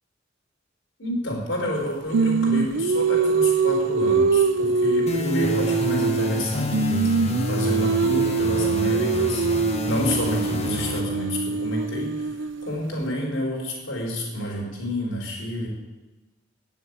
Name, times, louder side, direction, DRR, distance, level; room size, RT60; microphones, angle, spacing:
voice 1, 1.0-7.1 7.4-12.4 12.6-15.7, left 1 dB, 85° left, -2 dB, 3.8 m, -29 dB
Singing, 2.1-6.4 6.7-12.7, right 5 dB, 70° right, 0.5 m, -23 dB
sound 1, 5.1-11.0, left 2 dB, 35° left, 1.3 m, -29 dB
9.7 x 7.1 x 7.8 m, 1.2 s
head